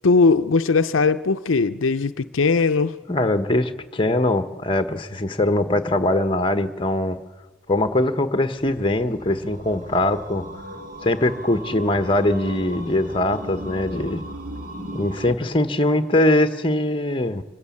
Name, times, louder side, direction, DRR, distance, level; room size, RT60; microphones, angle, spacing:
voice 1, 0.0-2.9, left 4 dB, 80° left, 10 dB, 0.6 m, -19 dB
voice 2, 3.1-7.2 7.7-10.5 11.0-14.2 14.9-17.4, left 1 dB, 25° left, 9 dB, 1.1 m, -22 dB
sound 1, 8.6-15.4, right 1 dB, 45° right, 2.1 m, -37 dB
25.5 x 15.0 x 8.5 m, 1.2 s
head